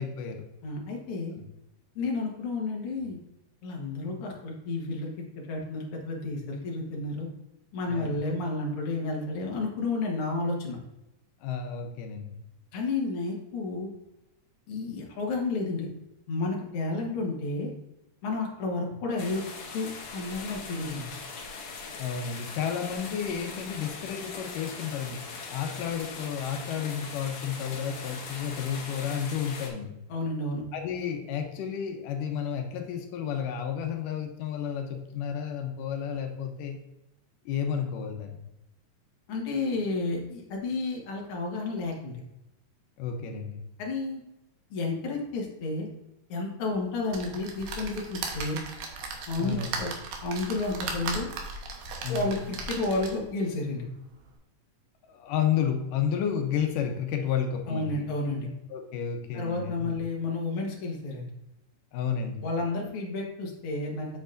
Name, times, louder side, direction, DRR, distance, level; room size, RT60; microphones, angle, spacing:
voice 1, 0.0-0.4 7.9-8.2 11.4-12.4 22.0-25.2 25.5-30.0 30.7-36.8 37.5-38.3 43.0-43.6 49.4-49.8 52.0-52.3 55.1-57.9 58.7-59.9 61.9-62.4, left 8 dB, 85° left, 4 dB, 2.4 m, -31 dB
voice 2, 0.6-1.3 2.0-3.2 3.6-5.1 5.4-7.3 7.7-10.8 12.7-13.9 14.7-15.9 16.3-17.7 18.2-19.4 19.7-21.1 30.1-30.6 39.3-42.2 43.8-44.2 44.7-45.9 46.3-48.6 49.3-49.9 50.2-51.3 52.1-53.8 57.7-58.5 59.3-61.3 62.4-64.1, left 3 dB, 50° left, -1 dB, 2.0 m, -31 dB
sound 1, 19.2-29.7, left 4 dB, 70° left, 2.2 m, -41 dB
sound 2, 47.1-53.3 53.9-54.0 54.2-54.3, right 4 dB, 85° right, 2.6 m, -37 dB
7.9 x 7.1 x 2.6 m, 0.91 s
omnidirectional pair, 3.7 m